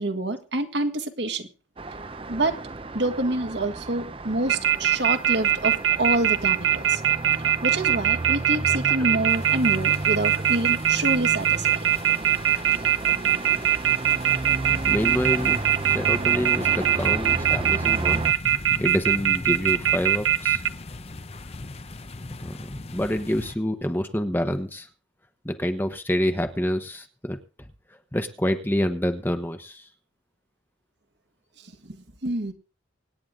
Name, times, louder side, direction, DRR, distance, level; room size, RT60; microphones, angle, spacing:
voice 1, 0.0-1.5 2.3-2.6 2.9-7.0 7.6-11.7 31.8-32.5, right 2 dB, 60° right, 1.7 m, -27 dB
Traffic noise roadway noise, 1.8-18.3, right 2 dB, 30° right, 0.7 m, -33 dB
sound 1, 4.5-20.7, right 10 dB, 85° right, 0.7 m, -21 dB
sound 2, 9.3-23.6, left 2 dB, 30° left, 0.7 m, -39 dB
voice 2, 14.8-18.3 18.8-20.6 22.4-24.9 25.4-27.7 28.1-29.9, equal, 10° left, 1.1 m, -27 dB
25.0 x 9.6 x 3.8 m
head